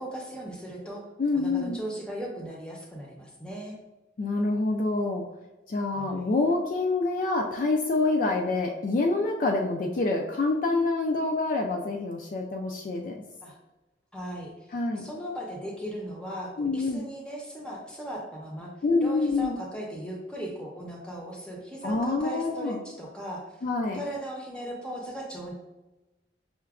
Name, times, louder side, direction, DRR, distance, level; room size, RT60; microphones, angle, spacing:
voice 1, 0.0-1.0 1.3-3.7 5.9-6.3 13.4-13.6 14.1-18.7 19.0-23.6 23.9-25.5, equal, 5° left, -2 dB, 0.6 m, -38 dB
voice 2, 1.2-1.8 4.2-5.2 5.7-13.2 14.7-15.1 16.6-17.0 18.8-19.6 21.8-22.8 23.6-24.0, left 3 dB, 45° left, 2 dB, 0.3 m, -26 dB
5.7 x 2.1 x 2.3 m, 1.1 s
head